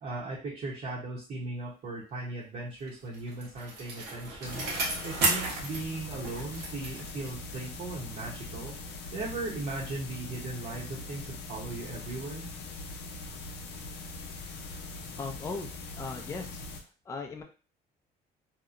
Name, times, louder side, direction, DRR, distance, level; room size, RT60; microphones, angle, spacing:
voice 1, 0.0-8.7 9.1-12.5, right 2 dB, 50° right, -6 dB, 0.8 m, -38 dB
Bicycle, 2.9-7.8 8.1-8.2, right 3 dB, 80° right, 1.0 m, -34 dB
sound 1, 4.4-16.8, left 2 dB, 90° left, 0.5 m, -42 dB
voice 2, 15.2-15.7 16.0-16.6 17.1-17.4, left 4 dB, 20° left, 3 dB, 0.4 m, -37 dB
2.8 x 2.0 x 2.4 m, 0.35 s
cardioid pair, 110°, 17 cm